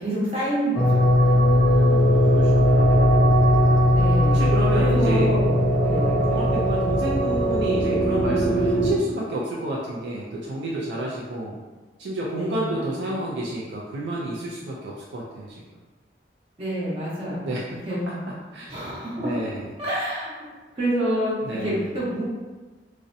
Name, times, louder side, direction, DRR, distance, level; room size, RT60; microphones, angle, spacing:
voice 1, 0.0-1.1 3.9-4.4 4.7-5.5 5.8-6.1 12.3-12.8 16.6-17.5 17.9-18.2 18.7-19.3 19.8-20.3 20.8-21.4 21.6-22.2, right 1 dB, 35° right, -7 dB, 0.7 m, -27 dB
sound 1, 0.8-8.9, equal, 10° left, 0.5 m, -19 dB
voice 2, 1.2-3.3 4.3-5.3 6.3-11.6 12.0-15.6 17.4-18.7 19.2-19.7 21.4-21.9, right 1 dB, 75° right, -4 dB, 0.3 m, -30 dB
2.6 x 2.0 x 2.5 m, 1.3 s
head